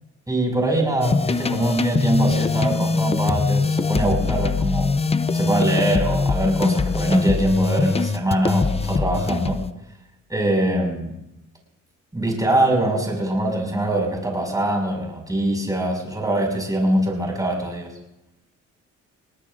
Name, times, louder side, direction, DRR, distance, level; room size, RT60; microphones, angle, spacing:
voice 1, 0.3-5.0 5.3-9.6 10.3-11.1 12.1-17.9, right 1 dB, 10° right, 1 dB, 5.7 m, -23 dB
sound 1, 1.0-9.7, left 4 dB, 20° left, 0.6 m, -22 dB
21.0 x 18.0 x 2.5 m, 0.87 s
cardioid pair, 90°, 30 cm